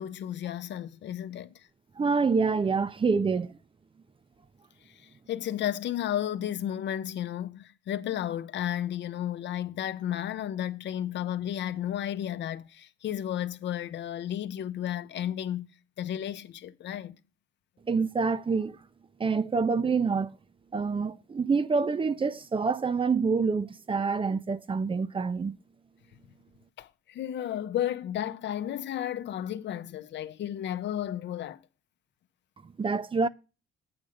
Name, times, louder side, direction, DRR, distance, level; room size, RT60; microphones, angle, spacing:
voice 1, 0.0-1.7 4.9-15.7 16.0-17.2 26.8-31.6, left 11 dB, 65° left, 0.7 m, -33 dB
voice 2, 2.0-3.6 17.9-18.8 19.2-20.4 20.7-25.6 32.6-33.3, right 4 dB, 25° right, 0.5 m, -27 dB
8.8 x 3.6 x 6.5 m
cardioid pair, 90°, 20 cm